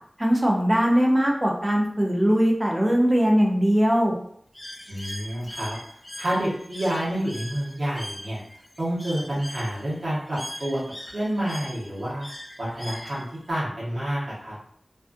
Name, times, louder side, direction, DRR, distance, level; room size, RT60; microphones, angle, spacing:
voice 1, 0.2-4.1, equal, 25° right, -1 dB, 0.6 m, -20 dB
Bird, 4.5-13.5, left 1 dB, 25° left, 0.4 m, -41 dB
voice 2, 4.9-5.8 6.2-8.4 8.8-10.8 11.1-12.3 12.6-14.6, right 1 dB, 75° right, -8 dB, 0.9 m, -28 dB
2.5 x 2.4 x 2.5 m, 0.66 s
wide cardioid pair, 60°, 0 cm